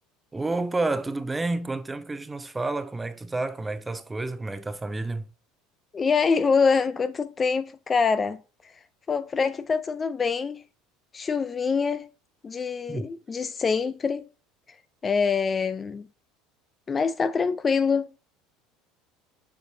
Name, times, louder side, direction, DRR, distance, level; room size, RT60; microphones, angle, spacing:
voice 1, 0.3-5.3 12.9-13.1, right 2 dB, 15° right, 0.7 m, -30 dB
voice 2, 5.9-8.4 9.1-10.6 11.1-12.1 12.4-14.3 15.0-16.1 16.9-18.1, left 5 dB, 25° left, 0.4 m, -25 dB
6.9 x 5.1 x 2.7 m
supercardioid pair, 95°, 0 cm